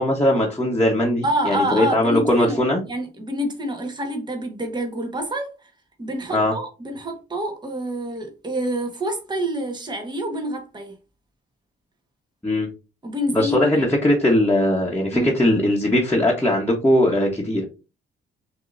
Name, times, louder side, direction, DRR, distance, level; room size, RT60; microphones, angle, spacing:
voice 1, 0.0-2.8 6.3-6.5 12.4-12.7 13.3-17.7, left 1 dB, 10° left, 1.3 m, -20 dB
voice 2, 1.2-2.6 2.8-5.7 6.0-10.9 13.0-13.8 15.1-15.3, equal, 20° right, 1.4 m, -27 dB
6.2 x 3.0 x 2.7 m
cardioid pair, 90°, 20 cm